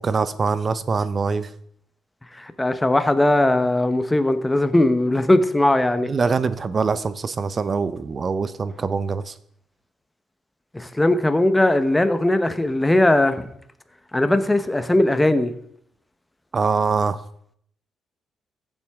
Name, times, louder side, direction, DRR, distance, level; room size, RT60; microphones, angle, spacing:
voice 1, 0.0-1.5 6.0-9.3 16.5-17.2, right 5 dB, 40° right, 14 dB, 0.7 m, -23 dB
voice 2, 2.3-6.1 10.7-13.5 14.1-15.5, left 1 dB, 10° left, 10 dB, 1.0 m, -19 dB
15.0 x 7.3 x 3.6 m, 0.68 s
cardioid pair, 90°, 0 cm